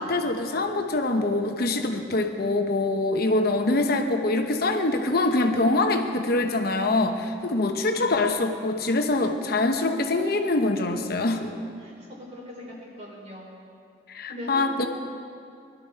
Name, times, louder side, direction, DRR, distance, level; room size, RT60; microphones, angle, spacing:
voice 1, 0.0-11.6 14.1-14.9, left 2 dB, 60° left, 5 dB, 0.9 m, -24 dB
voice 2, 11.8-13.5 14.3-14.9, left 1 dB, 40° right, -3 dB, 3.7 m, -40 dB
20.0 x 12.0 x 4.5 m, 2.4 s
head